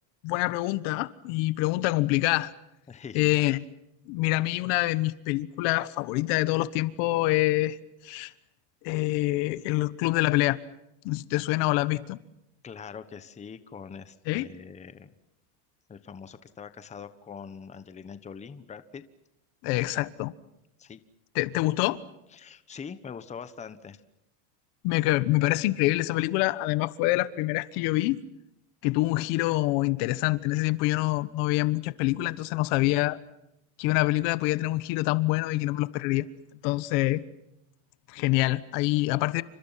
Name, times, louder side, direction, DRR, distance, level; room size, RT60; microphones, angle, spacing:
voice 1, 0.2-2.5 3.1-3.6 4.1-7.8 8.0-8.3 8.8-10.6 11.0-12.2 14.3-14.5 19.6-20.3 21.3-22.0 24.8-28.2 28.8-33.2 33.8-36.3 36.6-37.2 38.1-39.4, left 19 dB, 60° left, 1.4 m, -26 dB
voice 2, 2.9-3.3 12.6-15.1 15.9-19.0 20.8-21.0 22.3-24.0, left 6 dB, 15° left, 1.1 m, -43 dB
29.5 x 26.0 x 5.8 m
cardioid pair, 155°, 48 cm